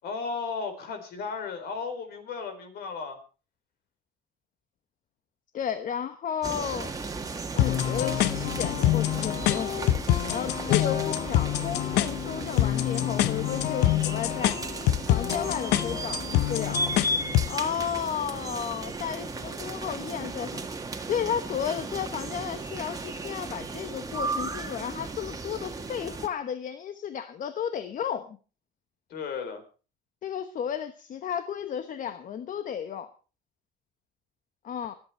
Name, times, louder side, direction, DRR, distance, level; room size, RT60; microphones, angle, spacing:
voice 1, 0.0-3.2 19.8-20.1 29.1-29.6, left 5 dB, 70° left, 7 dB, 4.3 m, -35 dB
voice 2, 5.5-6.9 7.5-9.8 10.3-14.6 15.1-16.8 17.5-20.6 21.1-28.4 30.2-33.1 34.6-35.0, left 8 dB, 50° left, 10 dB, 1.2 m, -33 dB
sound 1, 6.4-26.3, right 3 dB, 20° right, 1.8 m, -35 dB
sound 2, 7.6-17.6, left 13 dB, 85° left, 0.8 m, -26 dB
25.5 x 8.5 x 4.4 m, 0.36 s
cardioid pair, 110°, 17 cm